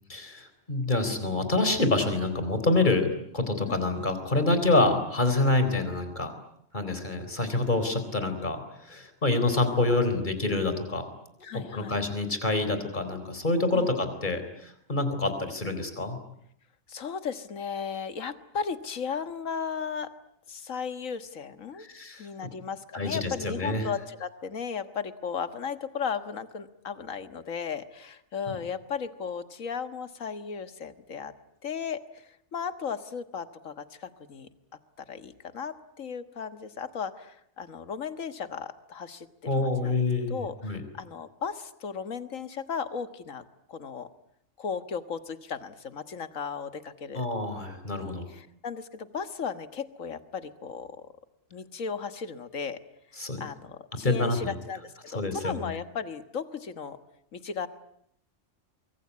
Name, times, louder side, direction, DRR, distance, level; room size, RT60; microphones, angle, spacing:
voice 1, 0.1-6.3 6.7-11.1 11.5-16.2 21.8-22.3 22.9-23.9 28.5-28.6 39.5-40.8 47.1-48.3 53.2-53.4 54.0-54.6 55.1-55.7, left 2 dB, 35° left, 8 dB, 4.3 m, -27 dB
voice 2, 3.7-4.1 11.4-12.0 13.7-13.9 16.9-20.1 20.5-21.9 22.2-31.3 31.6-34.5 35.0-39.3 39.5-40.0 40.3-43.4 43.7-44.1 44.6-47.3 48.3-51.1 51.5-52.8 53.1-57.0 57.3-57.7, left 6 dB, 85° left, 11 dB, 1.9 m, -36 dB
24.5 x 23.5 x 9.6 m, 0.72 s
omnidirectional pair, 1.3 m